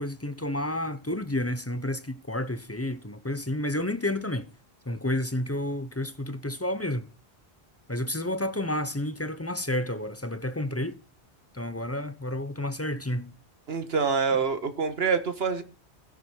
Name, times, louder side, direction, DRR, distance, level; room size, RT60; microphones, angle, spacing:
voice 1, 0.0-4.5 4.9-7.1 7.9-11.0 11.5-13.3, left 1 dB, 15° left, 0.7 m, -30 dB
voice 2, 13.7-15.6, right 5 dB, 70° right, 1.6 m, -26 dB
18.0 x 6.3 x 4.5 m
omnidirectional pair, 1.1 m